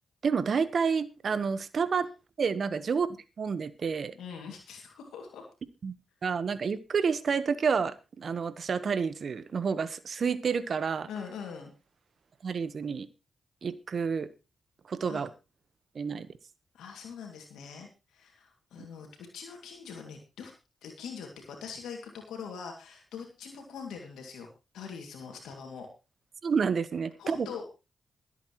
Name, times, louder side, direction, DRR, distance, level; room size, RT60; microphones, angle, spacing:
voice 1, 0.2-2.1 2.4-3.1 3.4-4.1 5.8-5.9 6.2-11.1 12.4-13.1 13.6-14.3 14.9-15.3 15.9-16.3 26.4-27.5, right 6 dB, 60° right, 14 dB, 1.1 m, -29 dB
voice 2, 4.1-5.5 11.1-11.7 15.0-15.3 16.7-20.5 20.8-25.9 27.2-27.6, left 6 dB, 85° left, 2 dB, 2.4 m, -43 dB
24.5 x 8.2 x 3.1 m, 0.28 s
supercardioid pair, 45°, 0 cm